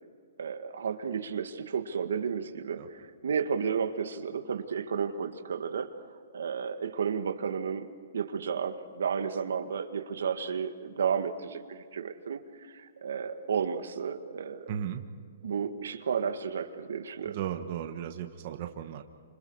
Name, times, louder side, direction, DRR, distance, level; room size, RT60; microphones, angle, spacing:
voice 1, 0.4-6.0 6.3-12.4 12.7-14.7 15.4-17.4, right 6 dB, 85° right, 7 dB, 1.9 m, -32 dB
voice 2, 14.7-15.0 17.2-19.0, right 9 dB, 40° right, 5 dB, 1.4 m, -35 dB
30.0 x 26.5 x 4.9 m, 2.1 s
hypercardioid pair, 170°, 0 cm